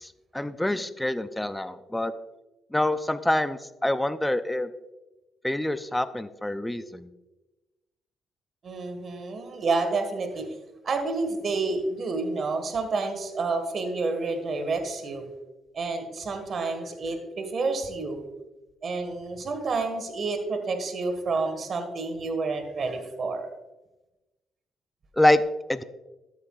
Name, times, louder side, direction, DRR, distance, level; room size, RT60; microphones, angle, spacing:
voice 1, 0.0-2.1 2.7-4.7 5.4-7.1 25.2-25.4 25.7-25.8, left 1 dB, 10° left, 12 dB, 0.5 m, -26 dB
voice 2, 8.6-10.5 10.8-15.2 15.7-18.2 18.8-23.5, right 3 dB, 50° right, 6 dB, 1.6 m, -29 dB
13.0 x 8.1 x 2.4 m, 1.1 s
cardioid pair, 90°, 0 cm